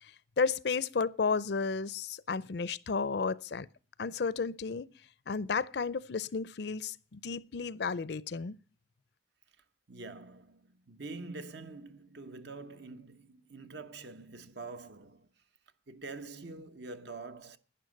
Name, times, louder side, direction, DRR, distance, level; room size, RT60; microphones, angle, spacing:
voice 1, 0.4-3.7 4.0-4.9 5.3-8.6, left 5 dB, 60° left, 0.5 m, -32 dB
voice 2, 9.9-15.3 15.9-17.6, right 3 dB, 65° right, 1.0 m, -45 dB
11.0 x 10.0 x 6.4 m
head